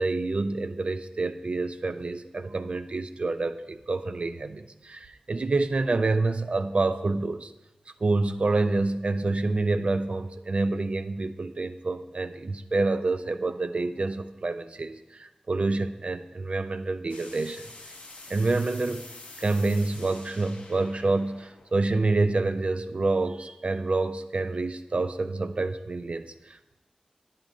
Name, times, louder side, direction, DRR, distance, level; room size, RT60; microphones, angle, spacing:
voice 1, 0.0-7.5 8.0-17.7 18.3-19.1 19.4-26.8, right 3 dB, 55° right, 10 dB, 0.4 m, -27 dB
sound 1, 17.1-22.8, left 2 dB, 80° left, 0.8 m, -47 dB
11.0 x 8.9 x 2.5 m, 1.0 s
cardioid pair, 45°, 2 cm